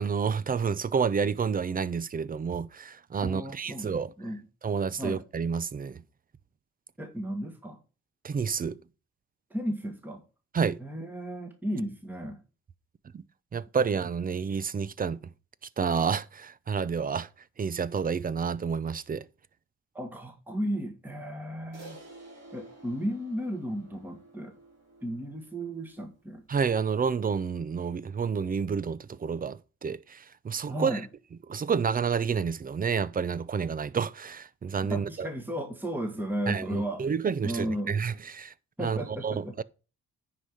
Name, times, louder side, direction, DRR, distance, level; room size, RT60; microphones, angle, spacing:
voice 1, 0.0-4.1 4.6-6.0 8.2-8.8 10.5-10.8 13.1-13.2 13.5-15.2 15.8-17.3 17.6-19.2 26.5-31.0 31.5-35.3 36.5-38.5 38.8-39.0 39.2-39.6, right 6 dB, 30° right, 0.5 m, -29 dB
voice 2, 3.2-3.9 4.2-4.4 5.0-5.2 7.0-7.8 9.5-10.2 10.8-12.4 19.9-22.0 22.5-24.5 25.0-26.4 30.7-31.1 34.9-37.1 37.4-38.0 38.8-39.5, equal, 5° right, 1.7 m, -34 dB
Crash cymbal, 21.7-26.3, right 2 dB, 55° right, 4.2 m, -51 dB
9.8 x 4.8 x 5.4 m
cardioid pair, 90°, 30 cm